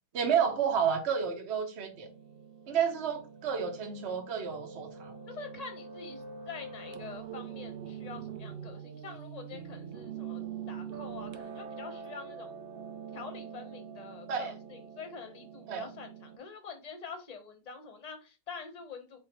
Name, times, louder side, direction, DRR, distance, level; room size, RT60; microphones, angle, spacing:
voice 1, 0.1-2.1 2.7-5.2 14.3-14.5 15.7-15.9, right 7 dB, 50° right, 0.9 m, -30 dB
Piano, 1.9-16.4, right 7 dB, 65° right, 0.5 m, -44 dB
voice 2, 5.3-12.6 13.1-19.2, left 5 dB, 30° left, 0.8 m, -46 dB
4.8 x 3.6 x 3.0 m
omnidirectional pair, 1.6 m